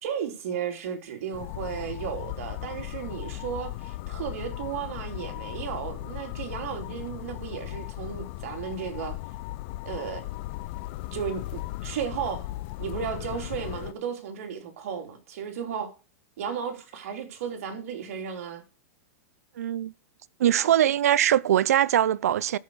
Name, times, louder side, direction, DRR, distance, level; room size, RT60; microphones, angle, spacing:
voice 1, 0.0-9.2 9.8-10.2 11.1-12.5 12.8-15.9 16.4-18.6 20.4-20.7, right 7 dB, 65° right, 3.2 m, -34 dB
sound 1, 1.3-13.9, left 17 dB, 45° left, 0.6 m, -37 dB
voice 2, 19.6-19.9 20.4-22.6, right 11 dB, 85° right, 0.6 m, -22 dB
13.0 x 5.6 x 6.3 m
supercardioid pair, 145°, 8 cm